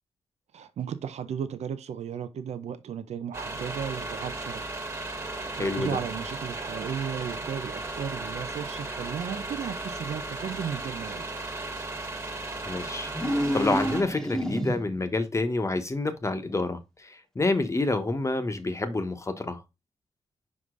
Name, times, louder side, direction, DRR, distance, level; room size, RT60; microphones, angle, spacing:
voice 1, 0.5-4.6 5.3-11.3, right 8 dB, 90° right, 0.6 m, -35 dB
sound 1, 3.3-14.0, right 2 dB, 25° right, 1.6 m, -36 dB
voice 2, 5.5-6.0 12.6-19.6, left 2 dB, 25° left, 1.1 m, -28 dB
sound 2, 13.1-15.1, equal, 5° left, 1.1 m, -29 dB
5.4 x 4.9 x 3.8 m
cardioid pair, 85°, 11 cm